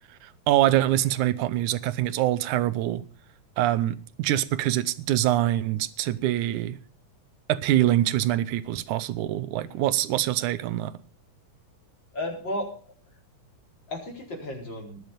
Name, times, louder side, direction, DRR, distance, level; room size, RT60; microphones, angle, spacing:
voice 1, 0.2-3.0 3.6-6.8 7.5-10.9, right 14 dB, 90° right, 2.2 m, -24 dB
voice 2, 12.1-12.9 13.9-15.0, left 1 dB, 35° left, 5.1 m, -34 dB
20.0 x 7.5 x 5.2 m
omnidirectional pair, 3.4 m